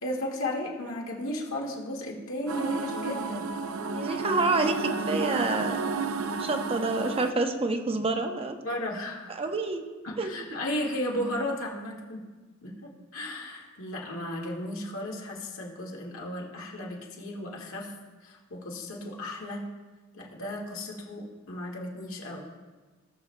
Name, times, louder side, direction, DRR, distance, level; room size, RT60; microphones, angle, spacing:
voice 1, 0.0-3.5 8.6-9.4 10.0-12.2 12.6-17.9 18.2-19.7 20.1-22.5, left 1 dB, 80° left, -2 dB, 1.8 m, -35 dB
sound 1, 2.5-7.3, right 4 dB, 90° right, 0.6 m, -31 dB
voice 2, 3.9-5.8 6.4-8.6 9.4-9.8 10.2-10.3, right 3 dB, 30° right, 5 dB, 0.7 m, -28 dB
18.0 x 6.9 x 2.2 m, 1.3 s
head